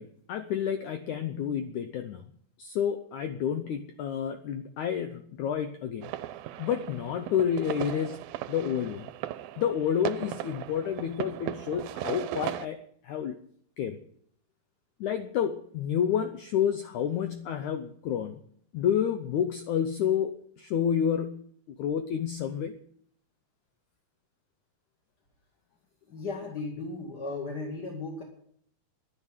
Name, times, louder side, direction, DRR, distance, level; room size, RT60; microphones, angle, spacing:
voice 1, 0.0-2.2 2.6-6.1 6.6-9.1 9.6-13.4 13.8-14.0 15.0-18.4 18.7-22.8, left 8 dB, 90° left, 8 dB, 1.7 m, -30 dB
sound 1, 6.0-12.7, right 14 dB, 75° right, 2.3 m, -37 dB
voice 2, 26.1-28.2, left 3 dB, 35° left, -1 dB, 2.0 m, -36 dB
11.0 x 11.0 x 9.9 m, 0.63 s
omnidirectional pair, 4.7 m